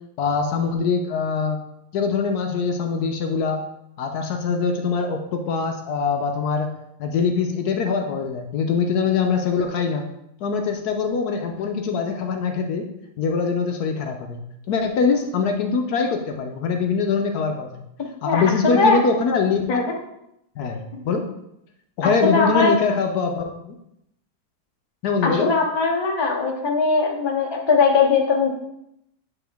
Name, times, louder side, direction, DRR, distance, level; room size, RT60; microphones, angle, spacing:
voice 1, 0.2-1.6 1.9-3.6 4.0-6.7 7.0-10.1 10.4-12.9 13.2-14.4 14.7-17.8 18.2-19.9 20.6-21.2 22.0-23.7 25.0-25.5, left 5 dB, 70° left, 4 dB, 1.0 m, -23 dB
voice 2, 18.2-19.0 19.7-19.8 22.0-22.7 25.2-28.5, left 4 dB, 45° left, 0 dB, 0.3 m, -20 dB
8.2 x 3.7 x 3.5 m, 0.81 s
omnidirectional pair, 2.0 m